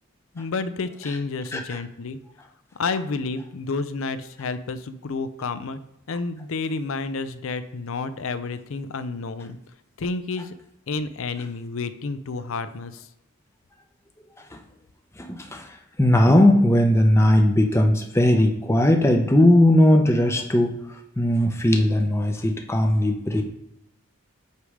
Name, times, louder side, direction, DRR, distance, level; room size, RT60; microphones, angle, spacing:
voice 1, 0.3-2.2 2.7-5.8 6.1-9.6 10.0-10.5 10.9-13.1, left 4 dB, 65° left, 12 dB, 0.5 m, -30 dB
voice 2, 15.2-15.7 16.0-20.8 21.2-23.4, left 1 dB, 10° left, 4 dB, 0.7 m, -18 dB
8.2 x 3.3 x 5.0 m, 0.86 s
head